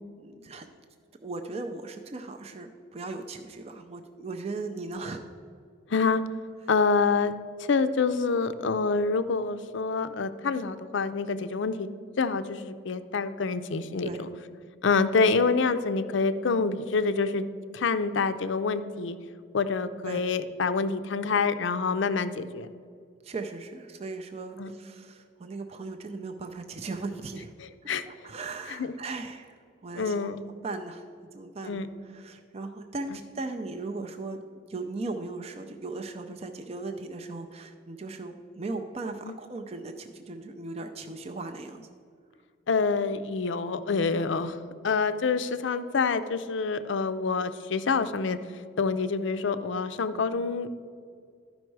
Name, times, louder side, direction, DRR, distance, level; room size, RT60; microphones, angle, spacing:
voice 1, 0.2-0.7 1.2-5.3 14.0-14.2 20.0-20.2 23.2-27.5 28.1-29.5 29.8-30.3 30.6-31.1 31.3-34.4 34.7-41.9 44.2-44.3, right 3 dB, 30° right, 5 dB, 0.4 m, -37 dB
voice 2, 5.9-6.2 6.7-7.3 7.6-11.9 12.2-14.3 14.8-17.4 17.7-19.2 19.5-22.7 24.6-24.7 27.9-28.1 28.7-28.9 30.0-30.4 31.7-31.9 39.2-39.3 42.7-44.6 44.8-48.4 48.8-50.7, left 4 dB, 65° left, 11 dB, 0.4 m, -27 dB
12.5 x 5.3 x 4.6 m, 2.2 s
head